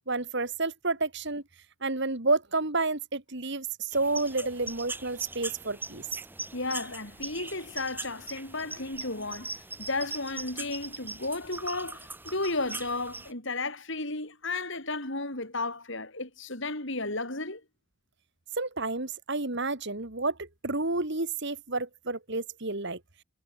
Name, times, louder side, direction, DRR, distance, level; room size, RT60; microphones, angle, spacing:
voice 1, 0.1-1.4 1.8-6.1 18.6-23.0, right 3 dB, 50° right, 2.4 m, -30 dB
sound 1, 3.9-13.3, right 3 dB, 10° right, 4.0 m, -40 dB
voice 2, 6.5-17.6, left 2 dB, 55° left, 5.4 m, -33 dB
head